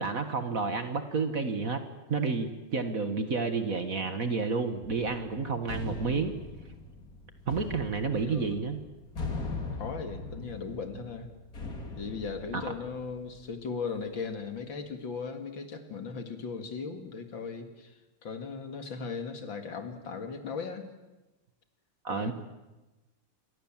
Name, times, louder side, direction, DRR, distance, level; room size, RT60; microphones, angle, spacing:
voice 1, 0.0-1.8 2.1-6.3 7.5-8.8 12.5-12.7 22.0-22.3, right 4 dB, 40° right, 8 dB, 1.8 m, -30 dB
sound 1, 4.8-13.5, left 3 dB, 40° left, 3.1 m, -40 dB
voice 2, 8.2-8.6 9.8-11.3 12.0-20.9 22.1-22.3, left 5 dB, 65° left, 7 dB, 2.8 m, -38 dB
27.5 x 24.0 x 7.4 m, 1.1 s
omnidirectional pair, 2.3 m